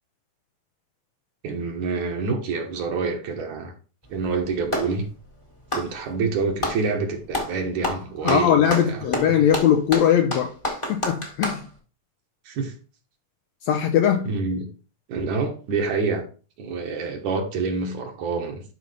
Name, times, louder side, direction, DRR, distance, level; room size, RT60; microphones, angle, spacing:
voice 1, 1.4-3.7 4.1-5.1 5.7-9.1 12.5-12.7 14.2-14.7 15.1-16.2 16.6-18.6, right 4 dB, 65° right, 2.6 m, -27 dB
Clapping, 4.0-5.0 5.6-6.8 7.3-7.6 7.8-11.6, left 1 dB, 15° left, 0.9 m, -28 dB
voice 2, 8.2-10.5 10.9-11.7 13.7-14.3, left 9 dB, 75° left, 1.6 m, -20 dB
12.0 x 5.1 x 3.3 m
omnidirectional pair, 3.7 m